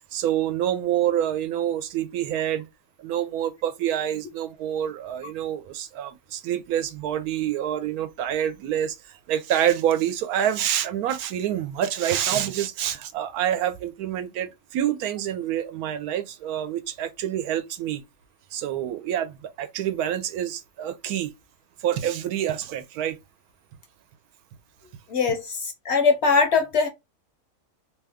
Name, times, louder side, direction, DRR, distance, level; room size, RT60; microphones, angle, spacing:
voice 1, 0.1-2.7 3.0-18.0 18.5-21.3 21.8-23.2, right 10 dB, 85° right, 1.1 m, -27 dB
voice 2, 25.1-26.9, left 5 dB, 60° left, 0.8 m, -21 dB
2.7 x 2.3 x 3.4 m
omnidirectional pair, 1.5 m